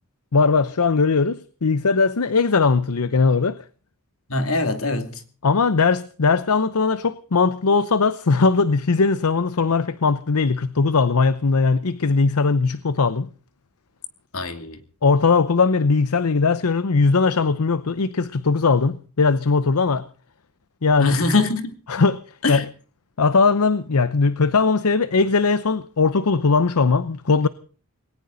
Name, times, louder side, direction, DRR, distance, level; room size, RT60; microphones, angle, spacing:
voice 1, 0.3-3.6 5.4-13.3 15.0-20.1 20.8-21.2 21.9-22.2 22.5-22.7 23.2-27.5, left 4 dB, 80° left, 0.7 m, -19 dB
voice 2, 4.3-5.2 14.3-14.8 21.0-21.8 22.4-22.6, left 2 dB, 65° left, 2.6 m, -23 dB
20.0 x 18.0 x 4.0 m
head